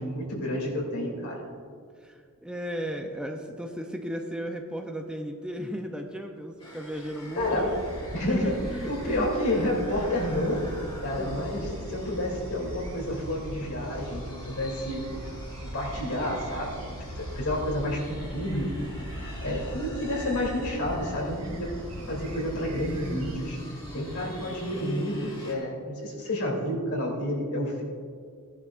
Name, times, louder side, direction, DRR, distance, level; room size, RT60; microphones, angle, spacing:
voice 1, 0.0-1.5 7.4-7.8 8.1-8.6 8.9-10.6 11.0-15.0 15.7-18.7 19.4-21.7 22.1-23.6 23.9-27.8, left 1 dB, 70° left, -2 dB, 2.9 m, -30 dB
voice 2, 2.0-7.7 8.2-9.3 11.2-11.3 23.8-25.1, equal, 5° right, 3 dB, 0.6 m, -36 dB
sound 1, 6.6-25.6, left 1 dB, 25° left, 2.1 m, -46 dB
sound 2, 7.4-23.4, right 1 dB, 80° right, 1.0 m, -39 dB
17.5 x 11.0 x 2.5 m, 2.1 s
head